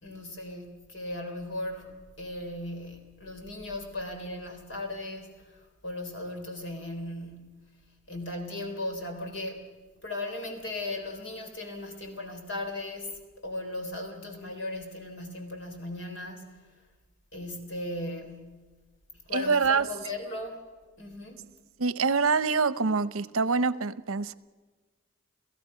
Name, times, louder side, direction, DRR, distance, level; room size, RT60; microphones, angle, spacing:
voice 1, 0.0-7.6 8.1-9.7 10.0-16.6 17.3-18.7 19.3-20.6 21.0-21.5, left 1 dB, 60° left, 4.0 m, -37 dB
voice 2, 19.3-19.9 21.8-24.3, right 4 dB, 80° right, 0.8 m, -25 dB
29.5 x 16.5 x 5.8 m
head